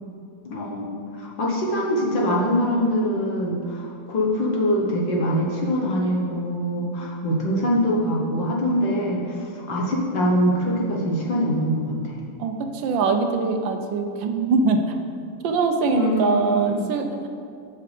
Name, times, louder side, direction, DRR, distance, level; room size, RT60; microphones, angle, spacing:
voice 1, 0.5-12.2 15.9-16.9, equal, 80° left, -2 dB, 2.0 m, -24 dB
voice 2, 12.4-14.9 15.4-17.3, right 4 dB, 85° right, 5 dB, 1.4 m, -23 dB
6.8 x 6.7 x 5.0 m, 2.4 s
omnidirectional pair, 2.0 m